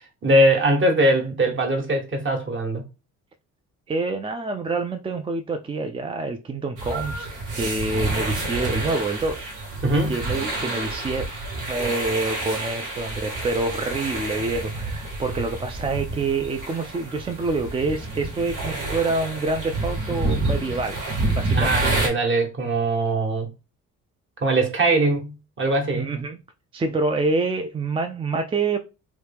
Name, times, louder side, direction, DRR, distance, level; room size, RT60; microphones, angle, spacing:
voice 1, 0.2-2.8 9.8-10.2 21.5-23.5 24.4-25.3 25.6-26.1, right 1 dB, 40° right, 1.0 m, -21 dB
voice 2, 3.9-9.5 10.1-11.4 11.7-21.0 21.3-21.9 25.9-26.4 26.7-28.8, right 3 dB, 20° right, 0.3 m, -27 dB
sound 1, 6.8-22.1, right 2 dB, 80° right, 1.2 m, -28 dB
3.1 x 2.2 x 3.3 m
cardioid pair, 90°, 30 cm